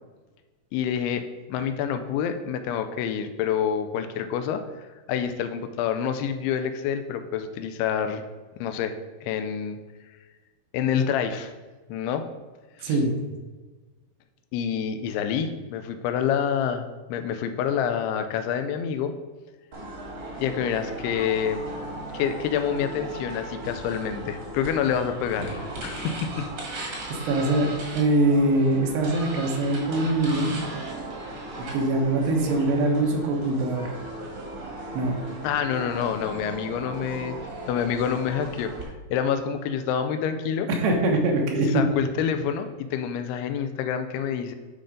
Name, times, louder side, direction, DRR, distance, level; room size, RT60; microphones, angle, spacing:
voice 1, 0.7-8.2 8.6-9.8 10.7-11.5 11.9-12.3 12.8-13.0 14.5-19.2 20.4-21.6 22.1-26.5 35.4-37.4 37.7-38.7 39.1-40.7 41.7-44.5, left 8 dB, 85° left, 9 dB, 2.5 m, -27 dB
voice 2, 12.8-13.1 27.3-30.5 31.7-33.9 34.9-35.2 40.7-41.8, right 2 dB, 80° right, 1 dB, 3.2 m, -23 dB
sound 1, 19.7-38.8, right 1 dB, 50° right, 1.5 m, -37 dB
10.0 x 3.8 x 5.2 m, 1.3 s
omnidirectional pair, 4.8 m